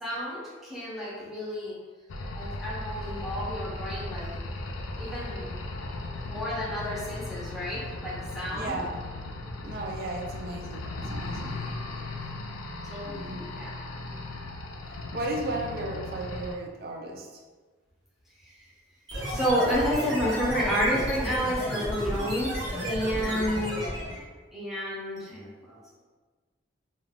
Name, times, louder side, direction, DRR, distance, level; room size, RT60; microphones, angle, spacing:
voice 1, 0.0-1.8 2.4-4.3 5.0-5.6 6.2-8.8 9.6-9.7 12.8-13.8 19.3-23.9 24.5-25.8, equal, ahead, -7 dB, 0.6 m, -30 dB
sound 1, 2.1-16.5, left 2 dB, 85° left, 0.4 m, -37 dB
voice 2, 8.5-9.0 9.6-11.6 13.0-13.5 15.1-17.4 23.1-23.6, right 2 dB, 50° right, 1 dB, 0.4 m, -35 dB
sound 2, 19.1-24.3, equal, 65° right, 1.0 m, -32 dB
2.3 x 2.3 x 3.4 m, 1.4 s
head